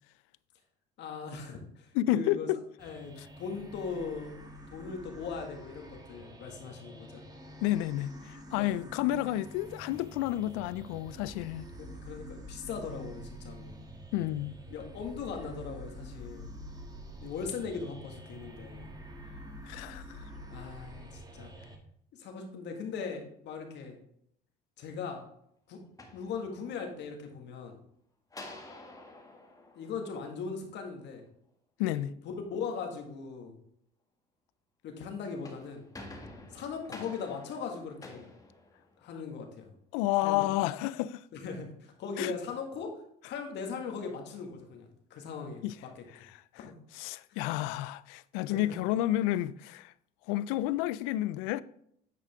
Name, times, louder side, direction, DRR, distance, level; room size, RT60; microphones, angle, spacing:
voice 1, 1.0-2.5 2.8-4.3 4.7-7.2 8.6-8.8 11.8-13.9 14.7-16.5 17.2-18.9 19.8-19.9 20.5-21.5 22.1-24.0 24.8-25.3 25.7-25.8 26.1-27.8 29.7-31.2 31.9-32.0 32.4-33.6 34.8-35.8 36.5-38.3 39.0-39.7 40.2-40.5 41.3-45.6 46.0-46.1 46.6-46.7 47.3-47.4 48.5-48.7, left 5 dB, 60° left, 1.8 m, -39 dB
voice 2, 1.9-2.6 3.2-3.3 7.6-11.7 14.1-14.6 19.7-20.3 31.8-32.1 39.9-41.2 42.2-42.3 45.6-45.7 46.9-49.9 50.3-51.6, left 14 dB, 85° left, 0.4 m, -30 dB
sound 1, 2.8-21.8, equal, 20° right, 1.4 m, -47 dB
sound 2, 25.8-27.0 28.3-30.8 35.2-39.3, left 2 dB, 15° left, 2.0 m, -50 dB
9.3 x 5.0 x 3.5 m
supercardioid pair, 100°, 20 cm